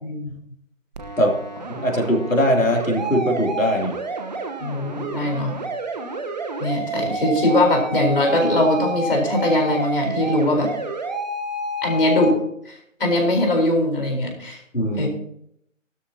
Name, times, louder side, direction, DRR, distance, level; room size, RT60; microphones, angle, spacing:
voice 1, 0.0-0.3 4.6-5.6 6.6-10.7 11.8-12.3 12.7-12.8 13.0-14.6 15.0-15.1, left 1 dB, 45° left, 2 dB, 4.2 m, -21 dB
sound 1, 0.9-12.3, right 3 dB, 35° right, 1.2 m, -29 dB
voice 2, 1.7-3.9 14.7-15.1, equal, 90° left, 1 dB, 3.2 m, -20 dB
15.0 x 13.0 x 2.9 m, 0.72 s
figure-of-eight pair, 155°, 39 cm